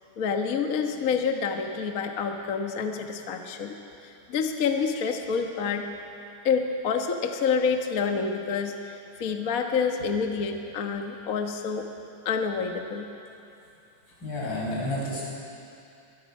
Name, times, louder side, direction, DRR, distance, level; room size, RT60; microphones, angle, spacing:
voice 1, 0.2-3.7 4.0-5.9 6.4-11.9 12.2-13.1, left 5 dB, 60° left, 4 dB, 0.9 m, -28 dB
voice 2, 14.1-15.2, left 1 dB, 35° left, -5 dB, 6.1 m, -31 dB
23.0 x 21.0 x 5.5 m, 2.7 s
omnidirectional pair, 3.5 m